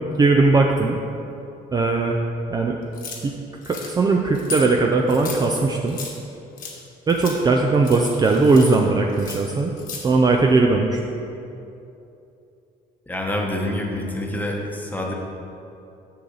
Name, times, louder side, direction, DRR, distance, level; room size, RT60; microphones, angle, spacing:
voice 1, 0.2-1.0 1.7-2.2 2.5-2.8 3.2-3.3 3.7-6.0 7.1-9.7 10.0-11.0, right 3 dB, 25° right, 1 dB, 0.4 m, -19 dB
sound 1, 2.9-3.2 3.6-3.9 4.3-4.7 5.1-6.1 6.6-6.8 7.1-7.4 7.7-8.8 9.1-10.0, left 3 dB, 55° left, 1.3 m, -35 dB
voice 2, 13.1-15.1, left 1 dB, 10° left, -1 dB, 1.0 m, -27 dB
6.9 x 6.3 x 3.9 m, 2.8 s
cardioid pair, 110°, 17 cm